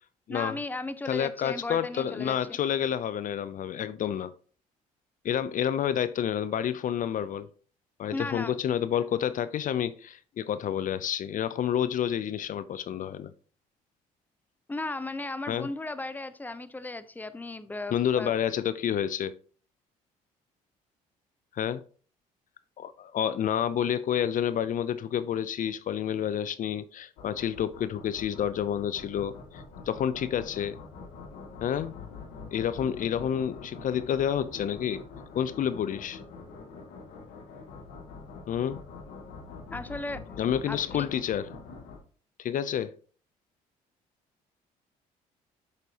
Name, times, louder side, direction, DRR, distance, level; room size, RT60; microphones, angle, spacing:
voice 1, 0.3-2.4 8.1-8.6 14.7-18.3 39.7-40.2 40.7-41.1, left 2 dB, 10° left, 0.7 m, -36 dB
voice 2, 1.1-4.3 5.2-7.5 8.0-13.3 15.5-15.7 17.9-19.3 21.5-21.8 22.8-30.8 31.6-32.0 32.5-35.0 35.4-36.2 38.5-38.8 40.4-41.5 42.4-42.9, left 9 dB, 55° left, 0.5 m, -29 dB
sound 1, 27.2-42.0, left 4 dB, 85° left, 2.2 m, -45 dB
8.3 x 6.7 x 2.9 m
supercardioid pair, 70°, 16 cm